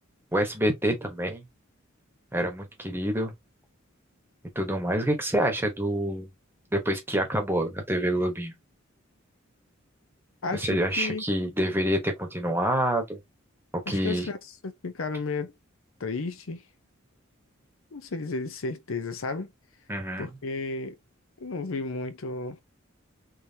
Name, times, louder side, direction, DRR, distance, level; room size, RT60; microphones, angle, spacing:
voice 1, 0.3-1.4 2.3-3.3 4.5-6.3 6.7-8.5 10.5-13.2 13.9-14.3 19.9-20.3, right 1 dB, 10° right, 1.0 m, -27 dB
voice 2, 10.4-11.2 13.9-14.4 14.6-15.5 16.0-16.6 17.9-19.5 20.2-21.0 21.4-22.6, left 3 dB, 75° left, 0.7 m, -33 dB
3.5 x 3.0 x 2.8 m
head